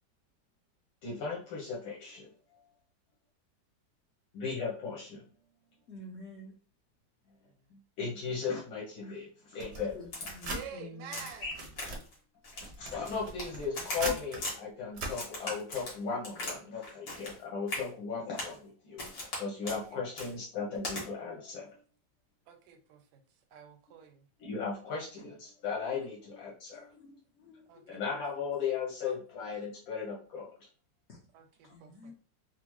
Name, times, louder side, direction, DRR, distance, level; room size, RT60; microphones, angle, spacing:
voice 1, 1.0-2.3 4.3-5.2 7.7-10.0 11.4-11.5 12.6-21.8 24.4-26.9 27.9-30.5, left 5 dB, 85° left, 1.7 m, -37 dB
voice 2, 5.9-6.6 9.9-11.3 26.9-28.2 29.0-29.1 31.1-31.2 31.6-32.1, left 2 dB, 50° left, 0.8 m, -49 dB
sound 1, 9.6-10.7 11.3-12.1 12.5-14.4 14.9-15.1, right 2 dB, 55° right, 0.7 m, -40 dB
Crack, 10.1-10.7 11.1-11.4 11.8-12.1 12.4-13.5 13.7-14.6 15.1-16.6 16.8-17.4 17.7-17.9 18.4-18.6 19.0-19.4 19.7-19.8 20.2-20.3 20.8-21.0, left 2 dB, 70° left, 2.1 m, -39 dB
voice 3, 10.5-11.6 19.6-20.2 22.5-23.2 23.5-24.3 27.7-28.2 31.3-32.1, right 8 dB, 70° right, 1.1 m, -49 dB
4.3 x 2.1 x 3.0 m
omnidirectional pair, 2.0 m